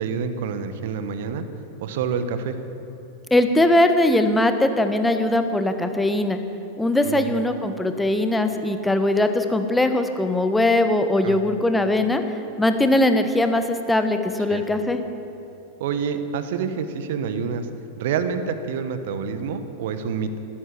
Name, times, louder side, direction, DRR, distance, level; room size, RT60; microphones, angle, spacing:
voice 1, 0.0-1.5 1.8-2.6 7.0-7.4 11.2-11.4 14.5-14.6 15.8-17.7 18.0-20.4, right 6 dB, 55° right, 10 dB, 1.2 m, -27 dB
voice 2, 3.3-6.4 6.8-12.2 12.6-15.0, left 1 dB, 5° left, 7 dB, 1.2 m, -20 dB
16.0 x 13.5 x 6.1 m, 2.9 s
figure-of-eight pair, 90°, 0 cm